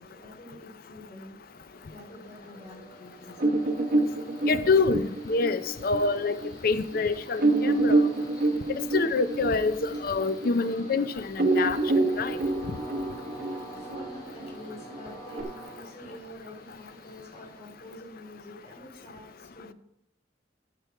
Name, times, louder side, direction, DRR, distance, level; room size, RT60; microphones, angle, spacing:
voice 1, 0.0-1.4 1.9-3.6 10.6-10.9 13.6-19.7, left 1 dB, 40° left, 3.6 m, -47 dB
Train, 1.5-18.2, right 1 dB, 25° left, 2.5 m, -48 dB
sound 1, 3.4-6.5 6.9-7.0 7.4-11.0 11.3-15.4, right 2 dB, 55° right, 1.1 m, -27 dB
voice 2, 4.5-6.4 6.6-8.0 8.7-11.8 12.2-12.4, left 4 dB, 55° left, 0.5 m, -26 dB
13.5 x 5.2 x 4.5 m
head